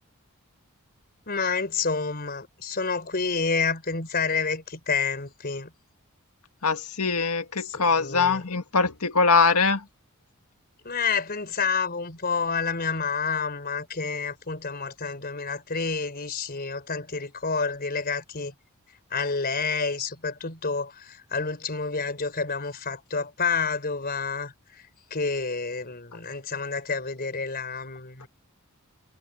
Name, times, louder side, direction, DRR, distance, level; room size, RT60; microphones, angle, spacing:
voice 1, 1.3-5.7 7.6-8.4 10.8-18.5 19.1-28.3, left 5 dB, 45° left, 4.3 m, -29 dB
voice 2, 6.6-9.8, left 4 dB, 85° left, 1.9 m, -22 dB
head